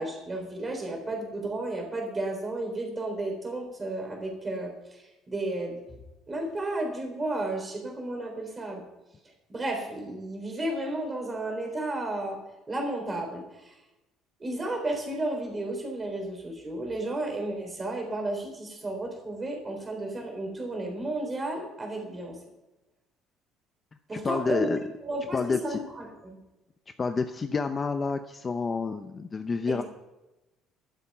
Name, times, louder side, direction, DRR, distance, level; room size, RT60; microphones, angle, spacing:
voice 1, 0.0-4.7 5.3-5.8 6.3-8.8 9.5-12.4 12.7-13.4 14.4-22.3 24.1-24.7 25.0-26.4 29.7-29.8, right 2 dB, 15° right, 2 dB, 3.9 m, -32 dB
voice 2, 24.1-24.8 25.3-25.8 27.0-29.8, left 4 dB, 20° left, 8 dB, 0.6 m, -29 dB
13.0 x 12.0 x 5.6 m, 1.0 s
cardioid pair, 165°, 0 cm